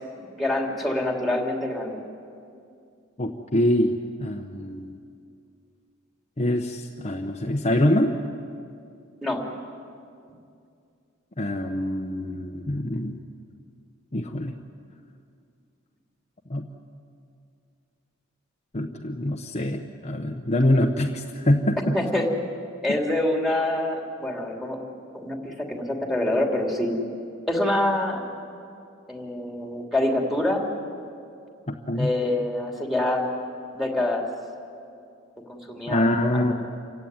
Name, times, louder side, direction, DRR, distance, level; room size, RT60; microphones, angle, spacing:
voice 1, 0.2-2.0 9.2-9.4 21.9-22.3 22.8-24.8 25.1-26.9 27.5-28.3 29.1-30.6 31.9-33.2 33.7-34.2 35.5-36.5, left 1 dB, ahead, 1 dB, 3.0 m, -26 dB
voice 2, 3.2-3.9 4.2-5.0 6.4-8.1 11.4-13.2 14.1-14.6 16.5-16.6 18.7-22.0 22.9-23.0 31.7-32.1 35.9-36.5, left 1 dB, 35° left, 2 dB, 1.0 m, -24 dB
28.0 x 16.0 x 9.6 m, 2.5 s
head